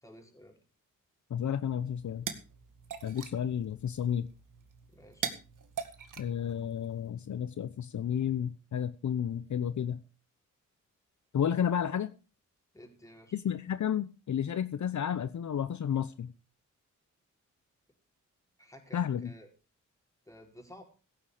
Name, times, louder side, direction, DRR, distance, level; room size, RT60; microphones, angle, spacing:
voice 1, 0.0-0.6 4.9-5.3 12.7-13.4 18.6-19.5 20.3-20.8, equal, 10° left, 5.0 m, -53 dB
voice 2, 1.3-2.3 3.0-4.3 6.2-10.0 11.3-12.1 13.3-16.3 18.9-19.3, left 9 dB, 65° left, 0.9 m, -32 dB
sound 1, 1.8-7.1, right 7 dB, 80° right, 2.0 m, -43 dB
16.5 x 9.6 x 5.0 m
cardioid pair, 85°, 31 cm